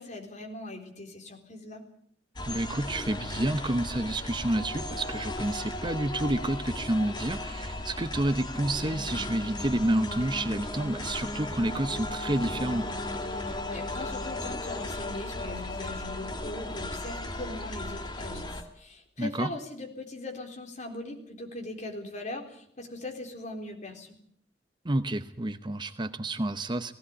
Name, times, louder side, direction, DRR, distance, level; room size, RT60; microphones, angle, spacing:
voice 1, 0.0-1.8 13.3-24.2, left 2 dB, 40° left, 2 dB, 3.9 m, -40 dB
sound 1, 2.4-18.6, left 1 dB, 25° left, 2.2 m, -36 dB
voice 2, 2.5-12.9 19.2-19.5 24.8-26.9, right 1 dB, 25° right, 10 dB, 0.8 m, -29 dB
18.5 x 16.5 x 8.6 m, 0.65 s
head